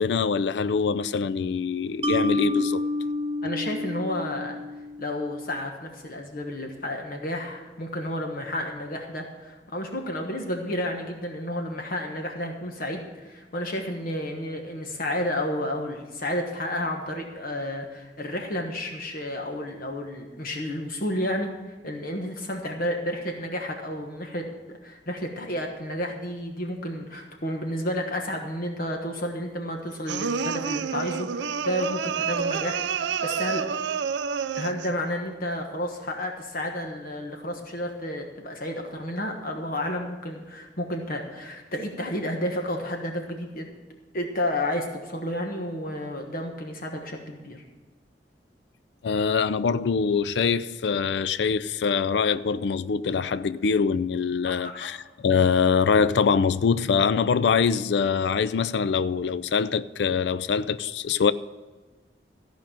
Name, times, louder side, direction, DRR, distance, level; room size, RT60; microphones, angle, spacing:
voice 1, 0.0-2.8 49.0-61.3, left 5 dB, 75° left, 0.4 m, -24 dB
Mallet percussion, 2.0-5.3, left 2 dB, 30° right, 0.7 m, -29 dB
voice 2, 3.4-4.6 5.0-21.5 21.8-33.6 34.5-43.7 44.1-47.6 54.4-54.9, left 1 dB, 55° left, 1.3 m, -31 dB
sound 1, 30.1-35.0, right 6 dB, 90° right, 0.4 m, -29 dB
14.5 x 5.3 x 9.0 m
head